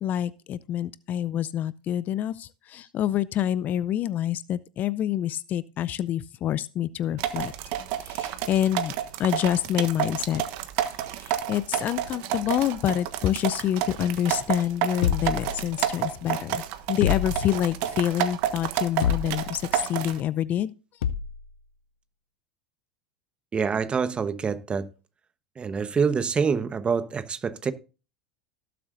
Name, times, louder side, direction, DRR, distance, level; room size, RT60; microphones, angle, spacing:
voice 1, 0.0-7.5 8.1-8.9 9.2-10.4 11.2-16.6 16.9-20.7, left 11 dB, 40° left, 0.5 m, -27 dB
sound 1, 7.2-20.2, right 11 dB, 60° right, 1.3 m, -30 dB
sound 2, 15.0-16.1 17.0-17.9 19.0-19.7 21.0-21.5, left 9 dB, 75° left, 0.8 m, -28 dB
voice 2, 23.5-24.9 25.6-27.7, right 6 dB, 25° right, 1.1 m, -26 dB
18.0 x 7.6 x 2.6 m
hypercardioid pair, 90°, 4 cm